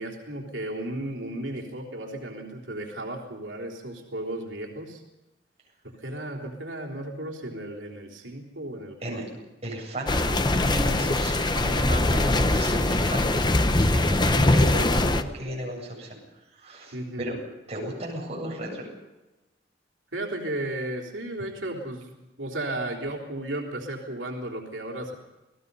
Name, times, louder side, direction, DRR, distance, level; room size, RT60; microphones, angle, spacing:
voice 1, 0.0-5.0 6.0-9.4 16.9-17.3 20.1-25.2, right 1 dB, 85° right, 0 dB, 3.6 m, -34 dB
voice 2, 9.6-16.2 16.5-17.4 17.7-18.9, right 1 dB, 35° right, -2 dB, 7.8 m, -34 dB
sound 1, 10.1-15.2, left 2 dB, 25° left, 0.8 m, -22 dB
28.5 x 18.5 x 5.5 m, 1.0 s
head